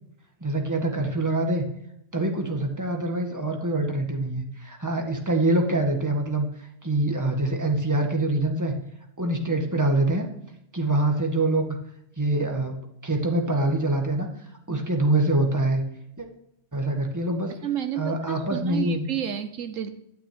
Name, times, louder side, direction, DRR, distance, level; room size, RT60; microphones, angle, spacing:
voice 1, 0.4-1.6 2.1-6.5 6.8-8.7 9.2-10.3 10.7-11.8 12.2-12.7 13.0-14.3 14.7-15.8 16.2-16.3 16.7-17.5 18.0-19.1, right 2 dB, 15° right, 3 dB, 1.8 m, -24 dB
voice 2, 17.5-19.9, right 9 dB, 75° right, 9 dB, 1.2 m, -31 dB
12.5 x 6.3 x 9.3 m, 0.80 s
omnidirectional pair, 1.3 m